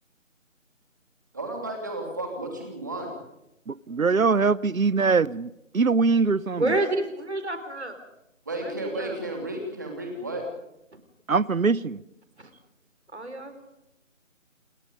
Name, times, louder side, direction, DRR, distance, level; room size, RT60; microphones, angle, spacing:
voice 1, 1.3-3.1 8.5-10.4, right 1 dB, 15° right, 2.9 m, -33 dB
voice 2, 3.7-6.7 11.3-12.0, right 4 dB, 85° right, 1.0 m, -22 dB
voice 3, 6.6-8.0 8.6-9.2 12.4-12.5 13.1-13.5, right 2 dB, 55° right, 4.5 m, -29 dB
28.0 x 22.5 x 5.3 m
figure-of-eight pair, 180°, 40 cm